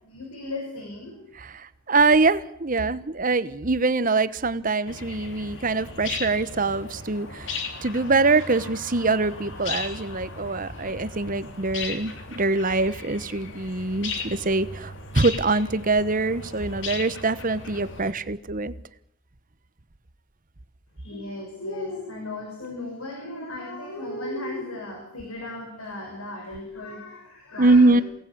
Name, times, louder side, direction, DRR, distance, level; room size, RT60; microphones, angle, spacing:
voice 1, 0.0-1.2 21.0-28.0, left 2 dB, 80° left, 1 dB, 6.6 m, -36 dB
voice 2, 1.3-18.7 27.6-28.0, right 3 dB, 40° right, 14 dB, 1.1 m, -23 dB
sound 1, 4.9-18.1, left 4 dB, 55° left, 3.1 m, -37 dB
28.0 x 18.5 x 8.6 m, 0.75 s
head